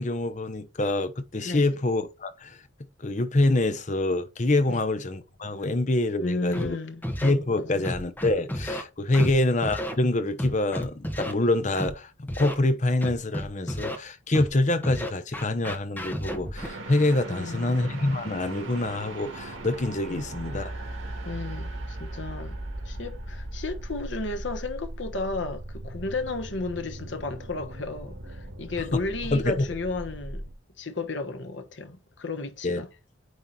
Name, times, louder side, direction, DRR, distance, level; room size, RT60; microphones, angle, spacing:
voice 1, 0.0-2.6 3.0-6.8 7.2-20.7 29.3-29.7 32.6-32.8, left 2 dB, 35° left, 0.8 m, -26 dB
voice 2, 1.4-1.8 4.7-4.8 6.2-7.0 7.5-7.9 9.2-9.4 17.3-17.8 20.1-20.2 21.2-22.6 22.8-30.4 30.8-32.9, left 3 dB, 65° left, 1.2 m, -33 dB
Scratching (performance technique), 6.5-6.7 7.0-7.3 7.8-8.8 9.1-9.3 9.6-9.9 10.4-11.3 11.8-11.9 12.3-12.5 13.0-14.0 14.3-14.5 14.8-16.7, equal, 10° left, 1.2 m, -31 dB
sound 1, 16.6-30.5, right 1 dB, 85° right, 2.2 m, -38 dB
9.3 x 3.2 x 4.2 m
head